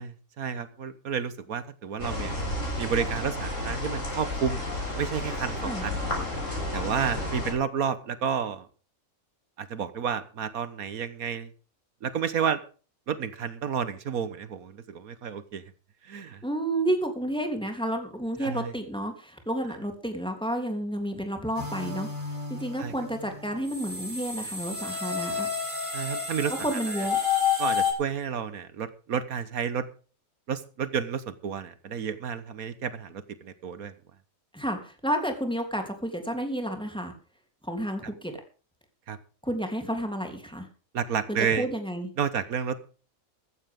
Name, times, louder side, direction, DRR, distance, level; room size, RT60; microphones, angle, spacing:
voice 1, 0.0-2.3 2.8-4.6 5.0-6.0 6.7-8.7 9.6-11.5 12.0-12.6 13.1-15.6 16.0-16.4 18.4-18.7 22.7-22.9 25.9-26.5 26.9-27.1 27.6-29.8 30.5-33.9 38.0-38.1 39.1-39.2 40.9-41.7 42.2-42.9, right 7 dB, 80° right, 13 dB, 1.6 m, -31 dB
sound 1, 2.0-7.5, left 1 dB, 60° left, 7.6 m, -32 dB
voice 2, 16.4-22.1 22.5-25.5 26.5-27.2 34.5-37.1 37.6-38.4 39.4-40.7 41.3-42.1, right 1 dB, 5° left, 4 dB, 3.3 m, -31 dB
sound 2, 21.5-27.9, left 6 dB, 35° right, 5.3 m, -30 dB
15.0 x 14.5 x 3.7 m, 0.37 s
omnidirectional pair, 1.5 m